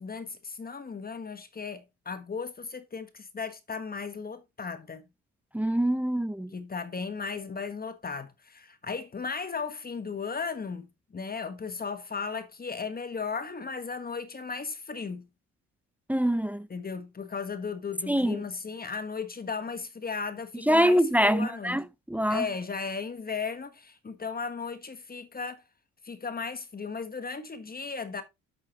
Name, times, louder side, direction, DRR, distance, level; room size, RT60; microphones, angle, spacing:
voice 1, 0.0-5.1 6.5-15.3 16.7-21.8 22.3-25.6 26.0-28.2, left 5 dB, 30° left, 1.4 m, -36 dB
voice 2, 5.5-6.5 16.1-16.7 18.1-18.4 20.7-22.5, equal, 5° right, 0.5 m, -24 dB
8.2 x 8.0 x 3.0 m
cardioid pair, 90°, 30 cm